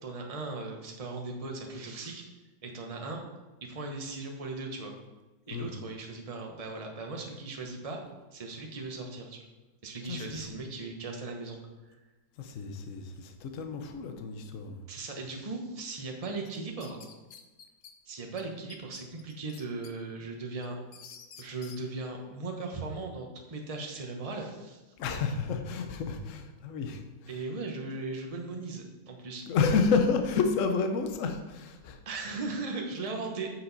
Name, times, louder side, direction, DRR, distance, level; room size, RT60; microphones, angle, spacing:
voice 1, 0.0-2.3 2.6-3.2 3.6-4.9 5.5-8.0 8.3-9.4 9.8-11.6 14.9-17.0 18.1-20.8 21.4-24.8 27.3-29.4 32.0-33.5, right 3 dB, 25° right, 2 dB, 0.8 m, -38 dB
voice 2, 10.0-10.5 12.4-14.8 25.0-27.4 29.5-32.0 33.1-33.4, left 5 dB, 55° left, 6 dB, 1.0 m, -30 dB
sound 1, 16.4-17.9 18.4-18.5 18.7-19.9 20.3-21.8, left 7 dB, 80° left, 0.6 m, -50 dB
8.1 x 6.2 x 4.1 m, 1.1 s
omnidirectional pair, 2.0 m